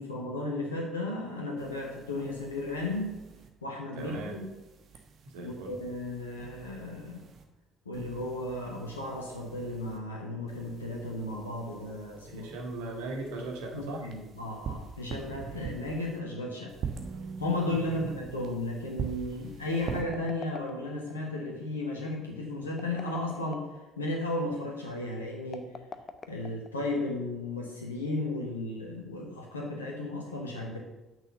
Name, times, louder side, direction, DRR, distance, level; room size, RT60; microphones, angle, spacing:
voice 1, 0.0-3.2 3.6-4.5 5.4-7.2 7.8-12.5 13.7-16.7 17.4-23.7 24.0-25.7 26.3-30.8, left 2 dB, 80° left, -1 dB, 1.2 m, -34 dB
sound 1, 1.6-3.5 4.0-7.4 7.9-10.0 10.5-16.2 16.7-20.0, right 6 dB, 45° right, 1.2 m, -43 dB
voice 2, 3.9-4.3 5.2-5.8 12.3-14.0 17.9-18.0, right 2 dB, 65° right, 1 dB, 1.8 m, -38 dB
sound 2, 19.7-21.2 22.7-23.8 25.4-27.0, left 5 dB, 35° left, 0.7 m, -45 dB
6.2 x 6.2 x 6.9 m, 1.0 s
figure-of-eight pair, 50°, 0 cm